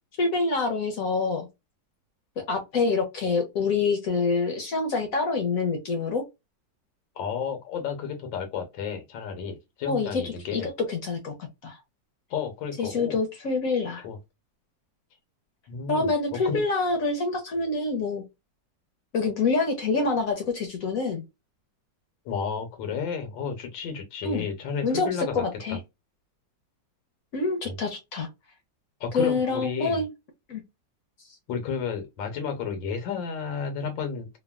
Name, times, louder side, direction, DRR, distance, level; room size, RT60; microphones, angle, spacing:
voice 1, 0.2-1.5 2.4-6.2 9.9-11.3 11.6-11.8 12.8-14.0 15.9-18.2 19.1-21.2 24.2-24.5 24.8-25.1 25.3-25.8 27.3-28.3 29.1-30.1 30.5-30.6, left 4 dB, 60° left, 0.9 m, -26 dB
voice 2, 7.2-10.7 12.3-13.2 14.0-14.2 15.7-16.6 22.2-25.4 25.7-25.8 27.6-27.7 29.0-30.0 31.5-34.4, left 6 dB, 85° left, 1.5 m, -32 dB
3.3 x 2.2 x 2.2 m
omnidirectional pair, 2.0 m